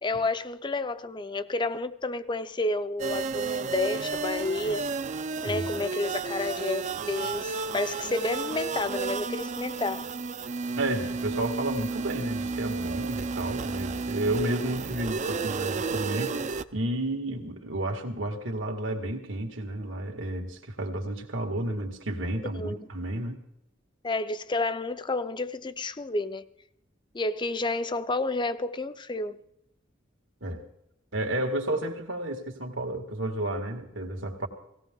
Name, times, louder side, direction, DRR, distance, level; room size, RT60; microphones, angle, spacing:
voice 1, 0.0-4.9 5.4-10.0 22.4-22.8 24.0-26.4 27.1-29.4, left 2 dB, 25° left, 0.6 m, -30 dB
sound 1, 3.0-16.6, right 4 dB, 40° right, 0.5 m, -32 dB
voice 2, 10.8-16.4 16.7-23.4 30.4-30.6 31.1-34.5, right 1 dB, 85° right, 2.1 m, -31 dB
18.0 x 17.0 x 3.8 m
head